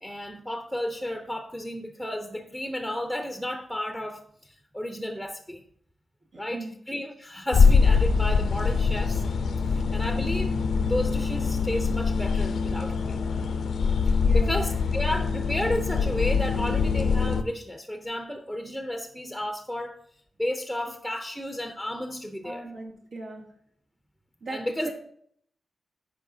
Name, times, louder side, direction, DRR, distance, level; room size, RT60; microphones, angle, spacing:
voice 1, 0.0-5.6 6.4-9.2 9.7-10.5 10.9-13.2 14.1-20.0 20.4-22.6 24.5-24.9, left 1 dB, 5° right, 0.6 m, -32 dB
voice 2, 6.3-6.7 14.2-14.6 22.4-23.4 24.4-24.9, right 2 dB, 85° right, 2.3 m, -39 dB
sound 1, 7.5-17.4, left 5 dB, 85° left, 0.5 m, -23 dB
13.0 x 5.5 x 2.7 m
wide cardioid pair, 150°, 0 cm